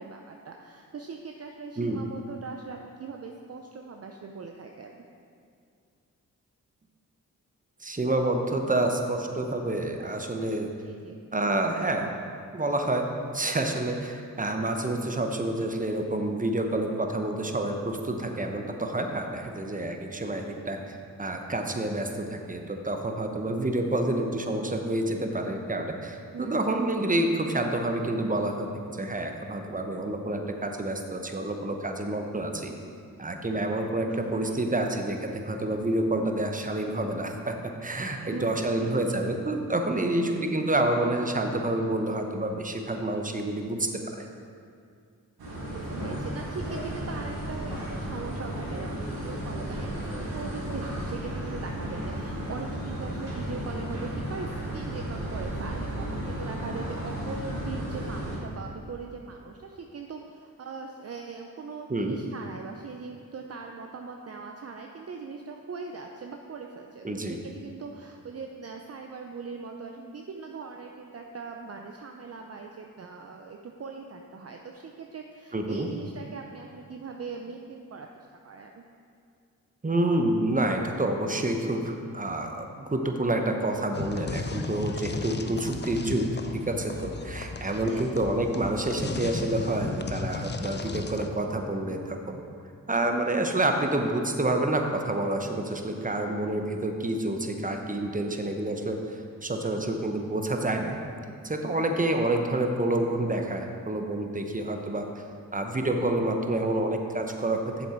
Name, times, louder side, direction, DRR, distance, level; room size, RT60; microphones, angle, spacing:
voice 1, 0.0-5.0 10.8-11.2 26.3-26.8 34.1-34.9 38.3-39.4 40.0-40.6 45.7-78.9 87.9-88.1, right 4 dB, 45° right, 2 dB, 0.6 m, -40 dB
voice 2, 7.8-10.7 11.3-12.1 12.5-20.8 21.2-32.7 33.2-43.9 44.2-44.3 61.9-62.1 67.0-67.4 75.5-75.9 79.8-86.3 86.5-92.4 92.9-99.0 99.4-101.0 101.4-105.1 105.5-107.9, right 1 dB, 20° right, 4 dB, 1.0 m, -28 dB
sound 1, 45.4-58.4, right 1 dB, 80° right, 2.1 m, -34 dB
sound 2, 83.9-91.3, left 3 dB, 30° left, 0.6 m, -35 dB
7.4 x 7.0 x 4.5 m, 2.3 s
supercardioid pair, 40°, 36 cm